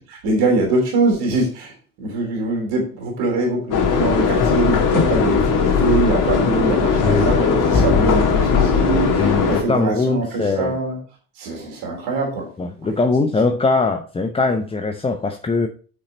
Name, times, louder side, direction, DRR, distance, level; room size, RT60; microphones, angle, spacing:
voice 1, 0.1-11.0 11.4-12.5, right 2 dB, 60° right, 3.3 m, -23 dB
sound 1, 3.7-9.6, left 5 dB, 45° left, 1.8 m, -18 dB
voice 2, 7.0-7.3 9.2-10.8 12.6-15.7, left 3 dB, 15° left, 0.7 m, -21 dB
8.4 x 5.8 x 4.1 m
figure-of-eight pair, 60°, 44 cm